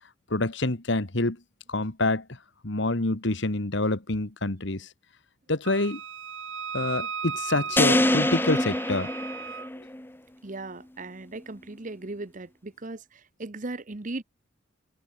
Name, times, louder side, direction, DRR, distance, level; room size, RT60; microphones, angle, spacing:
voice 1, 0.3-1.4 1.7-2.2 2.6-4.9 5.5-6.0 6.7-9.1, left 2 dB, 60° left, 1.8 m, -27 dB
Wind instrument woodwind instrument, 5.6-9.7, right 6 dB, 70° right, 3.4 m, -36 dB
sound 1, 7.8-10.1, left 1 dB, 10° left, 0.9 m, -24 dB
voice 2, 10.4-13.0 13.4-14.2, right 2 dB, 40° right, 1.0 m, -37 dB
head